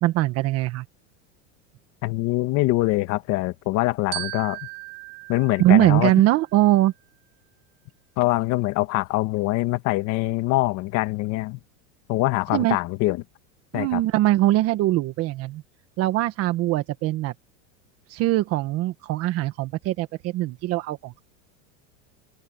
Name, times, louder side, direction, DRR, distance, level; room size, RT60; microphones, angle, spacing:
voice 1, 0.0-0.8 5.6-6.9 12.5-12.8 13.7-15.6 16.0-17.3 18.1-21.2, right 15 dB, 40° right, 1.4 m, -21 dB
voice 2, 2.0-4.6 5.3-6.1 8.2-11.6 12.1-13.2 13.7-14.0, left 19 dB, 45° left, 1.6 m, -24 dB
Glockenspiel, 4.1-6.6, right 29 dB, 55° right, 5.4 m, -37 dB
supercardioid pair, 150°, 37 cm